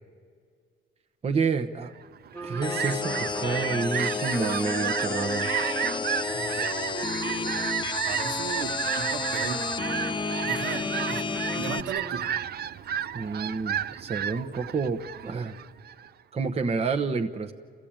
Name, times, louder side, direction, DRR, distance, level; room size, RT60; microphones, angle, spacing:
voice 1, 1.2-1.9 2.4-5.5 13.1-15.5 16.3-17.5, right 5 dB, 30° right, 4 dB, 0.9 m, -29 dB
Fowl, 2.1-16.1, right 10 dB, 50° right, 0.5 m, -32 dB
sound 1, 2.3-12.7, equal, 5° left, 1.5 m, -40 dB
sound 2, 2.6-11.8, left 5 dB, 20° left, 0.5 m, -31 dB
voice 2, 6.3-6.7 8.0-9.8 10.4-12.3, right 6 dB, 65° right, 6 dB, 1.5 m, -37 dB
28.5 x 15.5 x 8.8 m, 2.1 s
cardioid pair, 140°, 21 cm